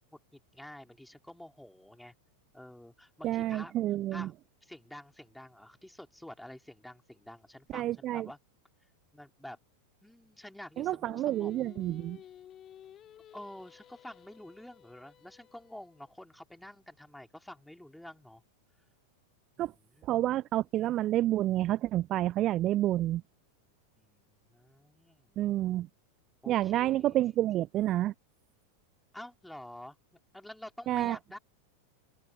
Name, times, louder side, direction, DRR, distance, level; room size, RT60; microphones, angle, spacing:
voice 1, 0.1-2.1 2.5-3.8 4.1-4.3 4.6-8.4 9.1-9.6 10.0-11.5 13.3-18.4 19.6-20.2 24.0-25.4 26.4-27.3 29.1-30.0 30.3-31.4, left 1 dB, 5° left, 4.1 m, -49 dB
voice 2, 3.2-4.3 7.7-8.3 10.8-12.2 19.6-19.7 20.0-23.2 25.4-25.9 26.5-28.1 30.9-31.2, right 14 dB, 35° right, 0.5 m, -29 dB
Singing, 11.0-16.2, left 10 dB, 30° left, 2.5 m, -54 dB
open air
figure-of-eight pair, 90°, 0 cm